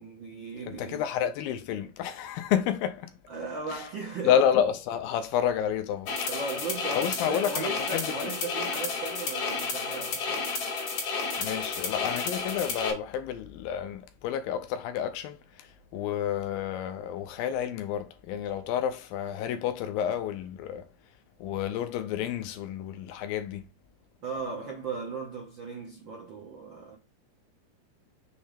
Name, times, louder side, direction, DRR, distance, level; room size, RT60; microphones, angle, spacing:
voice 1, 0.0-1.0 3.3-4.3 6.3-10.4 24.2-27.0, right 4 dB, 80° right, 1.0 m, -37 dB
voice 2, 0.7-3.1 3.7-3.8 4.2-6.3 6.9-8.1 11.4-20.9 21.4-23.7, left 9 dB, 85° left, 2.5 m, -30 dB
sound 1, 6.1-12.9, left 4 dB, 55° left, 3.4 m, -31 dB
6.8 x 3.2 x 5.0 m
omnidirectional pair, 4.1 m